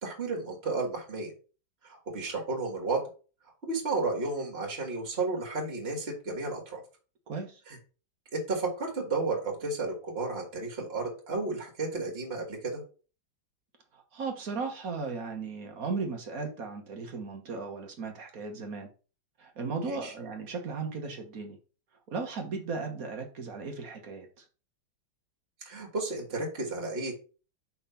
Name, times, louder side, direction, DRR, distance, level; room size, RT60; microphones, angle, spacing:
voice 1, 0.0-1.3 1.8-3.0 3.6-6.8 7.7-7.8 8.3-12.8 19.8-20.1 25.7-27.1, right 3 dB, 35° right, 0 dB, 2.1 m, -32 dB
voice 2, 7.3-7.6 13.9-18.9 19.4-21.6 22.1-24.4, right 4 dB, 55° right, 4 dB, 1.5 m, -36 dB
5.6 x 3.5 x 5.7 m, 0.36 s
omnidirectional pair, 1.9 m